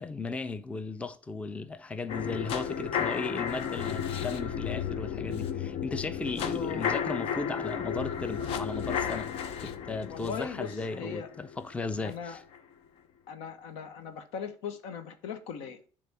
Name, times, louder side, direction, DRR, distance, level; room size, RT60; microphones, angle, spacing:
voice 1, 0.0-9.3 9.6-12.4, left 3 dB, 10° left, 0.4 m, -36 dB
sound 1, 2.1-12.1 12.5-12.6, left 8 dB, 65° left, 0.7 m, -33 dB
voice 2, 6.5-6.9 10.1-11.3 12.0-12.4 13.3-15.8, left 7 dB, 85° left, 1.0 m, -39 dB
7.1 x 3.4 x 5.7 m
cardioid pair, 120°, 10 cm